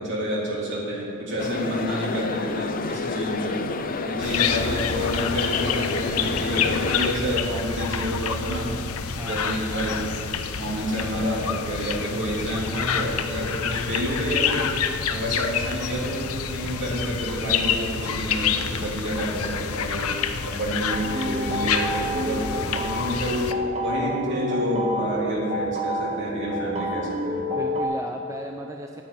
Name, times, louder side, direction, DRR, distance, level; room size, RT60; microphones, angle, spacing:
voice 1, 0.0-3.6 4.0-8.7 9.2-10.0 10.6-14.7 15.1-20.1 20.4-23.5 23.8-27.5, equal, 55° right, -4 dB, 3.2 m, -29 dB
sound 1, 1.4-7.1, left 3 dB, 40° left, 0.6 m, -29 dB
sound 2, 4.2-23.5, left 7 dB, 75° left, 0.7 m, -28 dB
voice 2, 9.2-9.6 27.5-29.0, right 1 dB, 15° right, 3 dB, 0.5 m, -35 dB
sound 3, 20.9-27.8, equal, 30° right, 1.5 m, -29 dB
9.8 x 8.5 x 8.9 m, 2.8 s
head